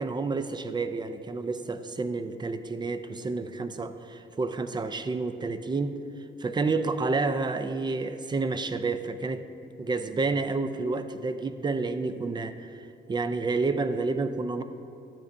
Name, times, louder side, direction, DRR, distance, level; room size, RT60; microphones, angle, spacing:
voice 1, 0.0-6.0 6.4-9.5 9.8-12.7 13.1-14.6, right 3 dB, 20° right, 10 dB, 0.5 m, -29 dB
12.0 x 8.5 x 2.6 m, 2.7 s
cardioid pair, 90°, 20 cm